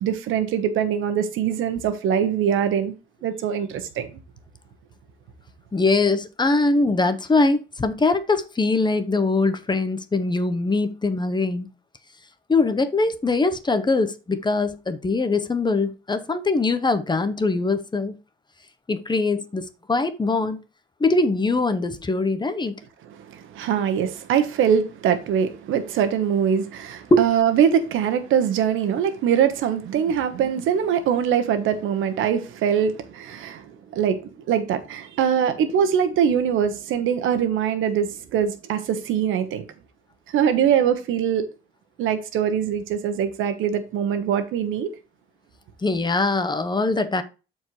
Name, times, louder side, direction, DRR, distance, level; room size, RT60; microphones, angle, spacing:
voice 1, 0.0-2.9 3.2-4.1 23.3-39.7 40.3-41.4 42.0-44.9, right 8 dB, 85° right, 1.2 m, -23 dB
voice 2, 5.7-11.7 12.5-18.2 18.9-20.6 21.0-22.7 27.1-27.2 45.8-47.2, left 3 dB, 20° left, 1.0 m, -22 dB
12.5 x 4.6 x 3.2 m
cardioid pair, 90°, 20 cm